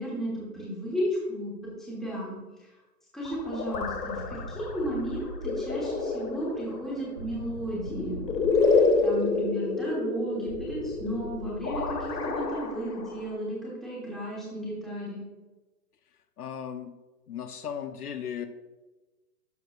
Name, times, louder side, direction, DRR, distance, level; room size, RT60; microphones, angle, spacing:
voice 1, 0.0-1.5 1.8-2.7 3.1-8.2 8.7-15.2, equal, ahead, -6 dB, 1.2 m, -34 dB
sound 1, 3.2-13.3, left 4 dB, 85° left, 1.6 m, -29 dB
sound 2, 4.1-6.4 7.2-9.5 10.5-12.7, right 1 dB, 90° right, 2.6 m, -42 dB
voice 2, 16.4-16.9 17.3-18.5, left 8 dB, 65° left, 9 dB, 0.8 m, -36 dB
12.0 x 6.3 x 2.4 m, 1.2 s
hypercardioid pair, 155°, 49 cm